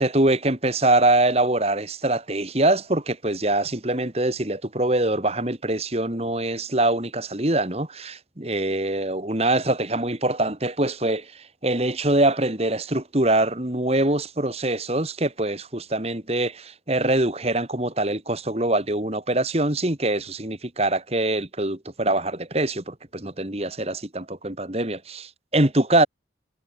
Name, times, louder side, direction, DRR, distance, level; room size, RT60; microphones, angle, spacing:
voice 1, 0.0-26.1, right 2 dB, 35° right, 2.3 m, -23 dB
head